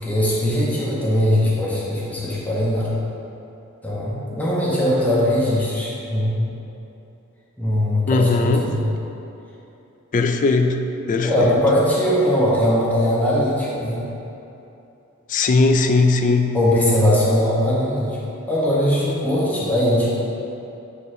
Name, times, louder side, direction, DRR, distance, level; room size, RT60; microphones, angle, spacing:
voice 1, 0.0-2.9 3.8-6.5 7.6-8.9 11.2-14.0 16.5-18.2 18.5-20.1, left 1 dB, 10° left, -7 dB, 0.9 m, -20 dB
voice 2, 8.1-8.7 10.1-10.8 11.1-11.5 15.3-16.6, left 3 dB, 40° left, 6 dB, 0.3 m, -18 dB
9.2 x 3.9 x 2.7 m, 2.9 s
head